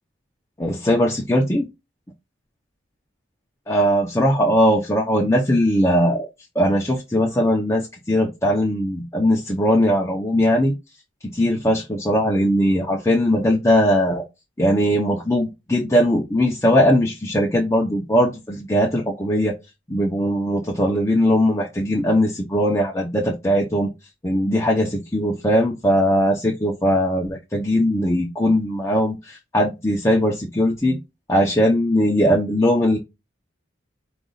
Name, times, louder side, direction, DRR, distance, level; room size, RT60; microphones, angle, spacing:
voice 1, 0.6-1.7 3.7-6.3 6.5-10.7 11.3-14.2 14.6-19.5 19.9-23.9 24.2-31.0 31.3-33.0, equal, 15° left, -1 dB, 0.8 m, -19 dB
5.0 x 2.6 x 3.9 m, 0.23 s
head